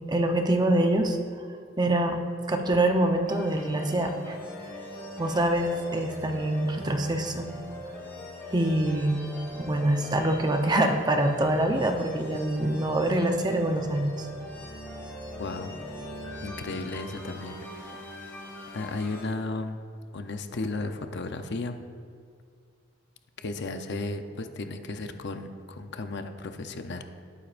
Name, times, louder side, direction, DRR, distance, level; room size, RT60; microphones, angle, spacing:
voice 1, 0.1-1.2 1.8-4.4 5.2-7.5 8.5-9.2 9.7-14.3, right 1 dB, 20° right, 4 dB, 0.8 m, -25 dB
sound 1, 3.3-19.2, left 1 dB, 15° left, 2.0 m, -41 dB
voice 2, 15.4-15.7 16.4-18.1 18.7-19.8 20.1-21.8 23.4-27.0, left 2 dB, 60° left, 7 dB, 0.7 m, -34 dB
18.5 x 9.4 x 2.5 m, 2.2 s
head